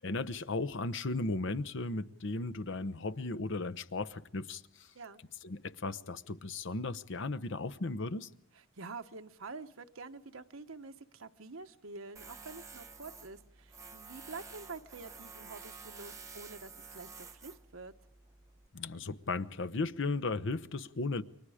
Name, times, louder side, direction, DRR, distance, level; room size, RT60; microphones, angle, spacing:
voice 1, 0.0-4.6 5.4-8.3 18.7-21.2, left 3 dB, 65° left, 0.9 m, -36 dB
voice 2, 8.5-17.9, right 3 dB, 80° right, 1.2 m, -47 dB
Tools, 12.2-18.7, right 4 dB, 15° right, 1.2 m, -51 dB
30.0 x 23.5 x 5.0 m
head